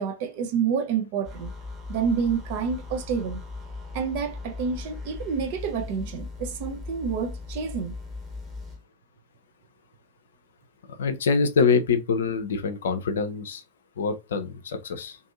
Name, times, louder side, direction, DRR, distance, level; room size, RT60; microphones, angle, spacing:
voice 1, 0.0-1.5 1.9-3.4 3.9-7.9, right 6 dB, 50° right, 0.5 m, -28 dB
sound 1, 1.3-8.8, left 3 dB, 15° right, 1.0 m, -38 dB
voice 2, 11.0-13.6 14.0-15.2, left 5 dB, 65° left, 0.5 m, -25 dB
2.6 x 2.6 x 2.4 m
figure-of-eight pair, 90°, 0 cm